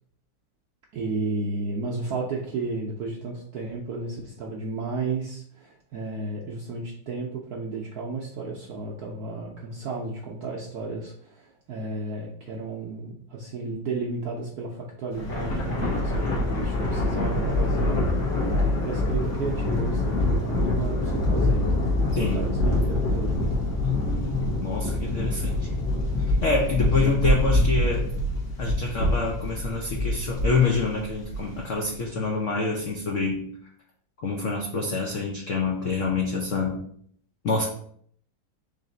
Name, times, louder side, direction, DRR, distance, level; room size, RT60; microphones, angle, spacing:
voice 1, 0.9-23.4 26.8-27.2, right 3 dB, 70° right, -2 dB, 0.9 m, -33 dB
Thunder, 15.1-31.7, left 1 dB, 55° left, 1.4 m, -25 dB
voice 2, 22.1-22.4 23.8-25.8 26.4-28.0 28.6-33.5 34.2-36.8 37.4-37.6, left 4 dB, 85° left, -1 dB, 0.6 m, -27 dB
4.0 x 3.3 x 3.9 m, 0.63 s
omnidirectional pair, 2.2 m